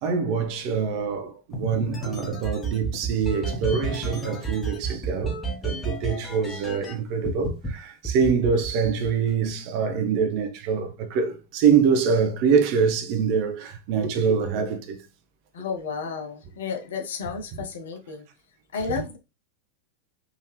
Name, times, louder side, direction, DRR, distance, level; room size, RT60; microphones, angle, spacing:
voice 1, 0.0-15.0, right 6 dB, 45° right, 0.7 m, -24 dB
sound 1, 1.5-6.9 7.2-7.7 8.0-9.5, right 4 dB, 15° left, 1.2 m, -31 dB
voice 2, 15.5-18.3 18.7-19.2, left 5 dB, 60° left, 0.7 m, -32 dB
3.6 x 2.7 x 3.1 m
figure-of-eight pair, 90°, 0 cm